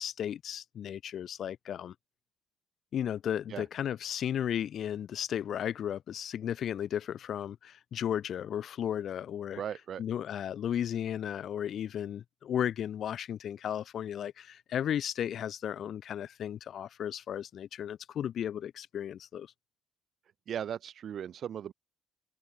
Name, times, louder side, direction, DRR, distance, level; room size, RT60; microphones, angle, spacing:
voice 1, 0.0-1.9 2.9-9.6 10.0-19.5, left 9 dB, 50° left, 0.4 m, -34 dB
voice 2, 9.6-10.0 20.5-21.7, right 9 dB, 50° right, 0.7 m, -37 dB
open air
cardioid pair, 125°, 0 cm